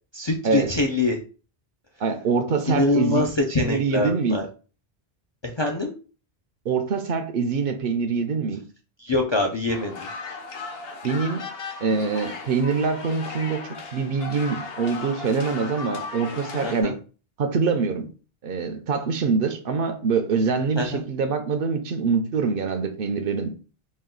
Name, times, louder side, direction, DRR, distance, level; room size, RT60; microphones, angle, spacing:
voice 1, 0.1-1.2 2.7-4.4 5.4-5.9 9.0-10.1 16.6-16.9 20.8-21.0, left 2 dB, 40° left, 0.4 m, -24 dB
voice 2, 2.0-3.2 3.6-4.4 6.7-8.6 11.0-11.4 11.8-17.0 17.4-18.1 18.4-23.5, right 5 dB, 65° right, 0.7 m, -24 dB
sound 1, 9.7-16.8, left 4 dB, 70° left, 0.9 m, -36 dB
4.2 x 2.3 x 3.7 m
omnidirectional pair, 1.0 m